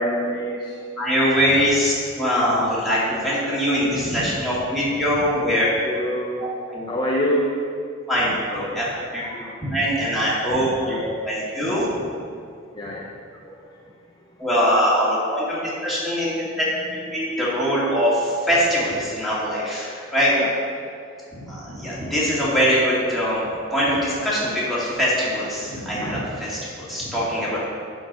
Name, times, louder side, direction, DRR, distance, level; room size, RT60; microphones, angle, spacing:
voice 1, 0.0-0.8 5.5-6.4 6.9-7.6 9.2-9.6 10.8-10.9 12.7-13.1 20.4-20.5 26.0-26.2 27.2-27.6, equal, 25° left, -3 dB, 0.6 m, -26 dB
voice 2, 1.0-5.7 6.4-6.9 8.1-9.2 9.6-11.9 14.4-16.7 16.9-20.3 21.3-23.4 23.7-27.6, equal, ahead, -8 dB, 2.4 m, -22 dB
11.0 x 4.5 x 5.3 m, 2.3 s
head